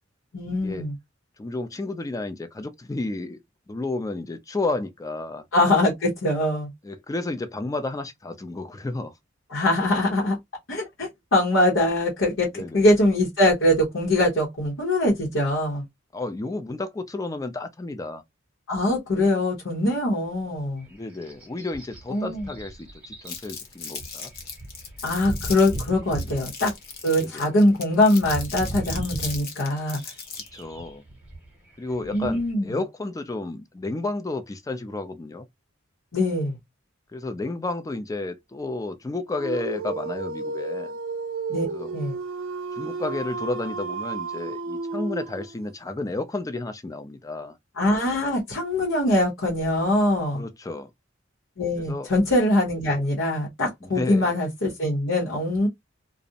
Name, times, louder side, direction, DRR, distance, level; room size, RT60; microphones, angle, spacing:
voice 1, 0.3-0.9 5.5-6.7 9.5-10.4 10.7-12.5 12.7-15.8 18.7-20.9 22.1-22.5 25.0-26.7 27.0-30.0 32.1-32.8 36.1-36.6 41.5-41.7 41.9-42.2 47.8-50.4 51.6-55.7, left 1 dB, 80° left, 0.9 m, -22 dB
voice 2, 1.4-3.4 3.7-5.4 6.8-9.1 12.5-12.9 16.1-18.2 20.9-24.3 26.2-26.4 27.2-27.5 30.5-31.0 31.8-35.5 37.1-41.0 41.7-41.9 42.8-47.6 50.3-50.9 51.9-52.1 53.8-54.3, left 2 dB, 15° left, 0.3 m, -32 dB
sound 1, 20.8-32.5, right 1 dB, 5° right, 0.9 m, -38 dB
Crumpling crinkling, 23.3-30.6, left 5 dB, 55° left, 0.8 m, -37 dB
Dog, 39.3-45.7, right 3 dB, 75° right, 0.4 m, -32 dB
2.5 x 2.0 x 2.7 m
head